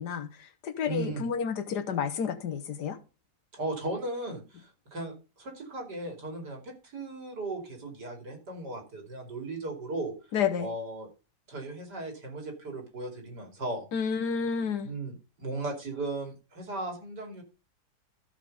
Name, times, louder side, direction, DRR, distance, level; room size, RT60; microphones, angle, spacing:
voice 1, 0.0-3.0 10.3-10.7 13.9-14.9, left 7 dB, 80° left, 1.7 m, -30 dB
voice 2, 0.9-1.2 3.5-10.1 10.6-11.1 11.5-13.9 14.8-17.4, right 2 dB, 85° right, 3.5 m, -36 dB
14.0 x 5.1 x 5.3 m
omnidirectional pair, 1.8 m